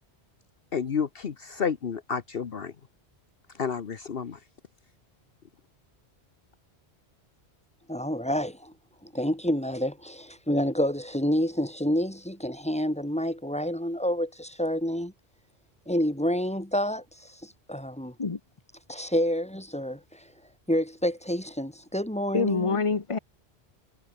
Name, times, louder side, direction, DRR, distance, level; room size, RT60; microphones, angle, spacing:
voice 1, 0.7-2.7 3.6-4.4, left 6 dB, 60° left, 1.2 m, -30 dB
voice 2, 7.9-8.7 9.0-15.1 15.9-18.1 18.9-20.3 20.7-22.8, equal, 5° left, 4.2 m, -28 dB
voice 3, 22.3-23.2, left 4 dB, 30° left, 1.0 m, -25 dB
omnidirectional pair, 1.1 m